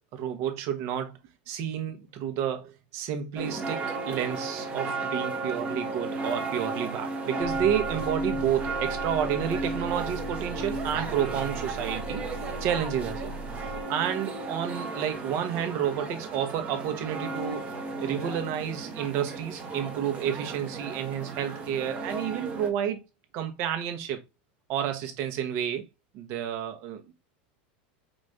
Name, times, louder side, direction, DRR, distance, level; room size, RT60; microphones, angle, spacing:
voice 1, 0.1-1.2 1.5-12.3 12.6-13.3 13.6-17.7 18.0-23.0 23.3-24.2 24.7-25.8 26.1-27.1, right 9 dB, 50° right, 1.2 m, -30 dB
sound 1, 3.4-18.3, equal, ahead, 0.7 m, -49 dB
sound 2, 3.4-22.7, right 3 dB, 25° right, 1.1 m, -34 dB
sound 3, 7.4-13.8, right 2 dB, 25° left, 1.3 m, -39 dB
5.2 x 2.5 x 3.2 m
supercardioid pair, 125°, 5 cm